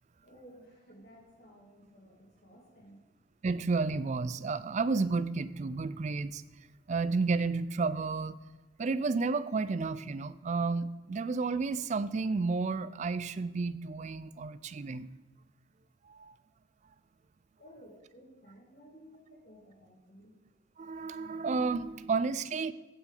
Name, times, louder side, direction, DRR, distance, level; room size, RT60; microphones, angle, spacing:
voice 1, 0.2-3.0 17.6-20.3, equal, 50° left, -2 dB, 2.0 m, -55 dB
voice 2, 3.4-6.4 6.9-8.4 8.8-15.1 16.1-16.3 20.8-22.7, right 4 dB, 35° right, 16 dB, 0.3 m, -31 dB
15.5 x 6.0 x 3.8 m, 1.3 s
head